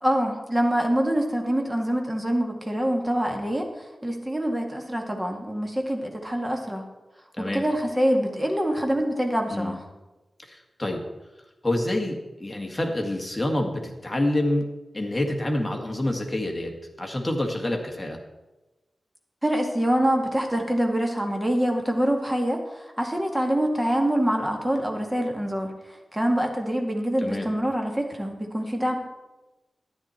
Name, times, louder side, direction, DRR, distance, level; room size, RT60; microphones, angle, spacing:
voice 1, 0.0-3.7 4.0-6.9 7.4-9.8 19.4-29.0, equal, 10° right, 2 dB, 2.1 m, -25 dB
voice 2, 10.4-11.0 11.6-14.6 14.9-18.2 27.2-27.5, left 1 dB, 15° left, 2 dB, 2.0 m, -27 dB
12.5 x 10.0 x 4.4 m, 1.1 s
wide cardioid pair, 95°, 0 cm